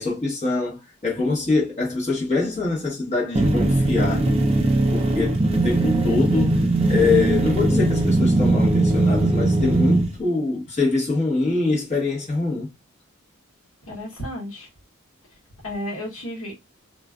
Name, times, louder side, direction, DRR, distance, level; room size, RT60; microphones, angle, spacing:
voice 1, 0.0-4.3 4.9-12.7, left 3 dB, 35° left, 1.0 m, -24 dB
sound 1, 3.3-10.1, right 2 dB, 25° right, 0.4 m, -20 dB
voice 2, 13.9-14.7 15.6-16.5, left 1 dB, 80° left, 1.0 m, -32 dB
2.4 x 2.3 x 2.2 m
head